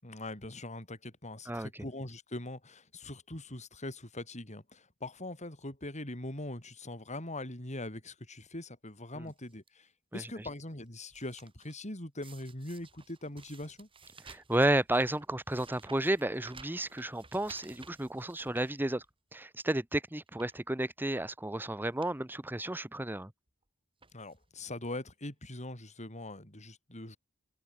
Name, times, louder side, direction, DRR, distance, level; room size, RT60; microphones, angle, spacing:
voice 1, 0.0-13.9 24.1-27.2, left 1 dB, 35° left, 7.0 m, -42 dB
sound 1, 9.3-9.7 10.3-11.8 12.2-19.3 19.7-19.8 20.3-20.6 21.4-21.6 21.8-22.2 22.5-22.6 23.5-23.6 24.0-24.5 25.2-25.3 25.5-25.6, right 4 dB, 25° right, 6.9 m, -56 dB
voice 2, 14.3-19.0 19.3-23.3, right 1 dB, 10° right, 1.0 m, -32 dB
head